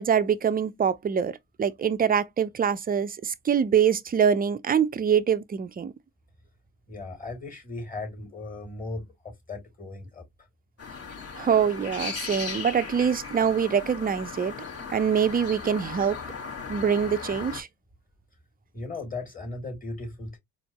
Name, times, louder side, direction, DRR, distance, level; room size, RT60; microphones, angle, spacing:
voice 1, 0.0-5.9 11.4-14.5 14.9-16.2 16.7-17.7, right 7 dB, 25° right, 0.6 m, -24 dB
voice 2, 6.9-10.2 18.7-20.4, left 2 dB, 20° left, 2.8 m, -37 dB
sound 1, 10.8-17.6, left 5 dB, 40° left, 2.4 m, -37 dB
4.3 x 2.8 x 2.9 m
hypercardioid pair, 55°, 38 cm